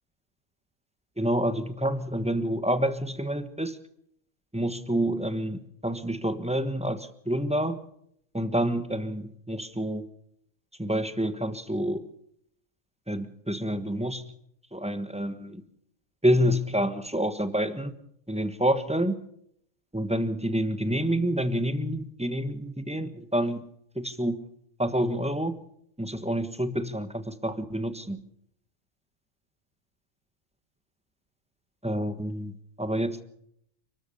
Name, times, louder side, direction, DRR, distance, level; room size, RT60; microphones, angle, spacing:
voice 1, 1.2-3.8 4.5-7.8 8.3-10.1 10.8-12.1 13.1-14.2 14.7-15.6 16.2-17.9 18.3-19.2 19.9-23.6 23.9-24.4 24.8-25.6 26.0-28.2 31.8-33.2, equal, 5° right, 10 dB, 1.3 m, -28 dB
29.0 x 13.5 x 6.9 m, 0.71 s
omnidirectional pair, 1.3 m